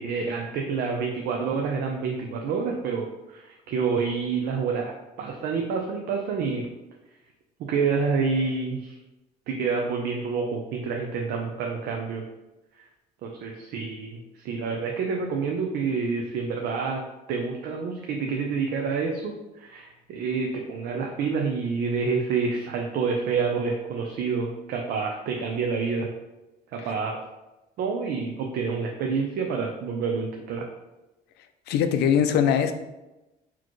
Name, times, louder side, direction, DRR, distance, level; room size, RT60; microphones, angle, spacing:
voice 1, 0.0-4.9 5.2-6.7 7.6-9.0 9.5-12.2 13.2-17.0 17.3-26.1 26.7-27.2 27.8-30.7, right 5 dB, 70° right, 1 dB, 0.5 m, -28 dB
voice 2, 31.7-32.7, left 8 dB, 75° left, 9 dB, 0.4 m, -21 dB
4.1 x 2.9 x 3.0 m, 1.0 s
cardioid pair, 110°, 17 cm